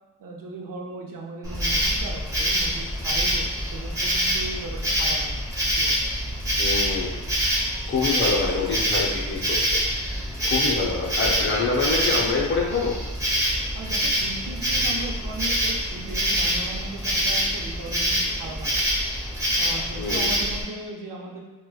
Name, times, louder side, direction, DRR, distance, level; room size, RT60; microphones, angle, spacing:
voice 1, 0.2-5.4 5.8-5.9 13.7-18.8 19.5-21.4, right 2 dB, 75° right, 0 dB, 0.6 m, -37 dB
Insect, 1.4-20.6, equal, 10° right, 1.0 m, -25 dB
voice 2, 6.6-7.1 7.9-13.0 20.0-20.3, left 4 dB, 35° left, -3 dB, 0.7 m, -26 dB
4.4 x 2.2 x 2.3 m, 1.2 s
wide cardioid pair, 120°, 33 cm